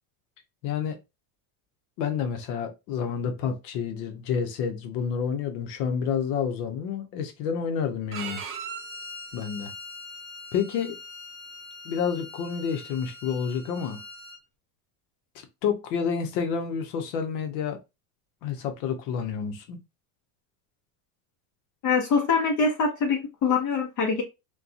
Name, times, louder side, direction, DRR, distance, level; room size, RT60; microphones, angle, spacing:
voice 1, 0.6-1.0 2.0-8.4 9.3-9.7 10.5-11.0 11.8-14.0 15.6-17.8 18.4-19.8, left 7 dB, 75° left, 0.8 m, -29 dB
Bowed string instrument, 8.1-14.4, right 1 dB, 30° right, 0.6 m, -41 dB
voice 2, 21.8-24.2, left 5 dB, 40° left, 0.8 m, -24 dB
2.5 x 2.3 x 2.4 m
supercardioid pair, 130°, 45 cm